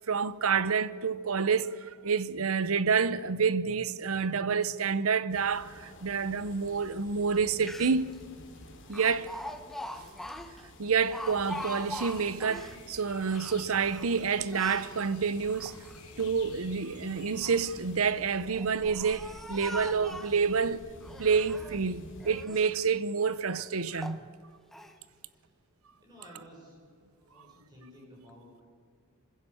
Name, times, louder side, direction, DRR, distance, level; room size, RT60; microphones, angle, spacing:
voice 1, 0.0-8.2 8.9-9.3 10.8-15.7 16.2-20.9 21.2-24.2, right 5 dB, 70° right, 0.8 m, -28 dB
sound 1, 5.3-22.5, left 1 dB, 60° left, 3.1 m, -51 dB
Speech, 7.3-7.4 7.6-8.2 8.9-12.8 13.2-14.9 15.4-16.3 17.2-17.7 18.4-20.5 21.0-21.8 22.2-22.7 23.3-23.4 23.9-24.2 24.7-25.0, left 1 dB, ahead, 1.1 m, -42 dB
sound 2, 11.2-18.0, left 4 dB, 90° left, 5.1 m, -52 dB
voice 2, 25.0-25.5 26.0-26.8 27.1-28.6, equal, 20° right, 6.4 m, -54 dB
27.0 x 16.0 x 7.1 m
head